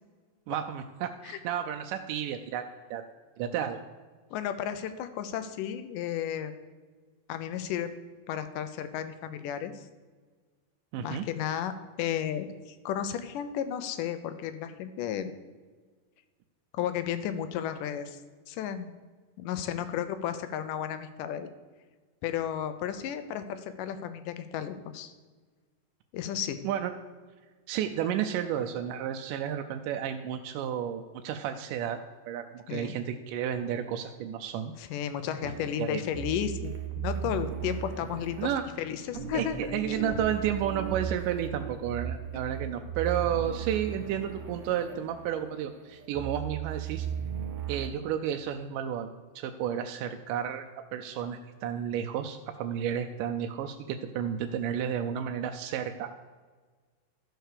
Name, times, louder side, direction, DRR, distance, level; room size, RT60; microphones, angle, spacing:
voice 1, 0.5-2.6 2.9-3.0 3.4-3.8 10.9-11.2 26.6-26.9 27.7-32.0 32.3-34.7 35.4-35.5 35.8-36.0 38.4-38.7 39.3-47.1 47.7-50.7 50.9-56.1, right 9 dB, 90° right, 5 dB, 2.2 m, -32 dB
voice 2, 4.3-6.5 7.3-7.9 8.3-9.7 11.0-11.7 12.0-15.3 16.7-18.2 18.5-18.9 19.4-21.5 22.2-25.1 26.1-26.6 32.7-33.0 34.8-38.5 38.8-40.1, left 9 dB, 85° left, 10 dB, 2.3 m, -33 dB
sound 1, 35.4-47.9, right 8 dB, 70° right, 1.8 m, -37 dB
13.0 x 4.6 x 6.7 m, 1.4 s
omnidirectional pair, 3.7 m